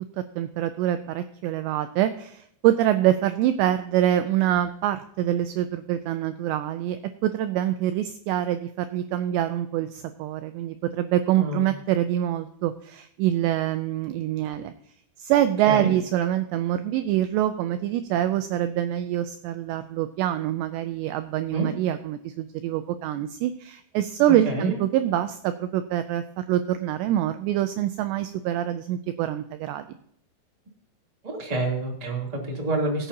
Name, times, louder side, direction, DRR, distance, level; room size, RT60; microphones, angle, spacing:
voice 1, 0.4-14.7 15.2-29.9, right 12 dB, 85° right, 9 dB, 2.5 m, -25 dB
voice 2, 31.2-33.1, right 2 dB, 15° right, -2 dB, 1.7 m, -27 dB
20.0 x 8.6 x 2.8 m, 0.71 s
omnidirectional pair, 5.6 m